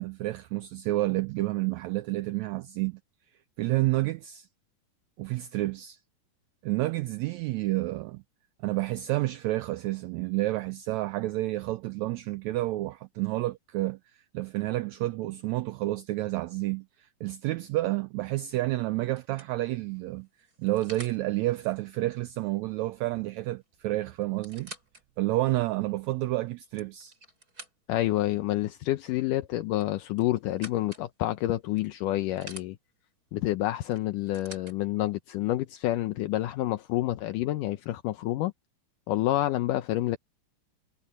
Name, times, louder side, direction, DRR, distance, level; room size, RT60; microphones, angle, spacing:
voice 1, 0.0-3.0 3.6-4.5 5.2-6.0 6.6-8.2 8.6-14.0 14.3-20.3 20.6-24.7 25.2-27.1, right 18 dB, 85° right, 1.6 m, -30 dB
sound 1, 18.5-18.6 19.2-21.2 23.2-23.4 23.6-23.7 24.2-25.0 25.6-25.7 26.5-28.1 29.7-31.1 31.8-32.7 33.9-34.8 35.7-35.8, right 2 dB, 25° right, 7.7 m, -48 dB
voice 2, 27.9-32.8 33.3-38.5 39.1-40.2, left 15 dB, 80° left, 2.3 m, -28 dB
omnidirectional pair, 3.9 m